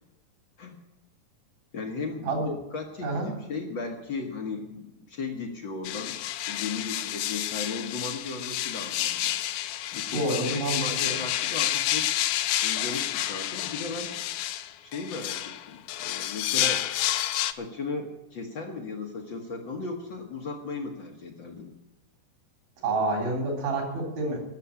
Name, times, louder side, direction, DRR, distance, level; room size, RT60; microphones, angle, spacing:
voice 1, 1.7-2.4 2.7-6.2 6.5-9.3 9.9-12.1 12.6-14.1 14.8-16.9 17.5-21.7, left 4 dB, 70° left, 3 dB, 1.1 m, -36 dB
sound 1, 5.8-17.5, left 13 dB, 90° left, 1.6 m, -29 dB
voice 2, 10.1-10.8 11.0-11.1 22.8-24.4, right 2 dB, 80° right, 1 dB, 5.4 m, -28 dB
13.0 x 7.0 x 9.8 m, 0.98 s
omnidirectional pair, 4.0 m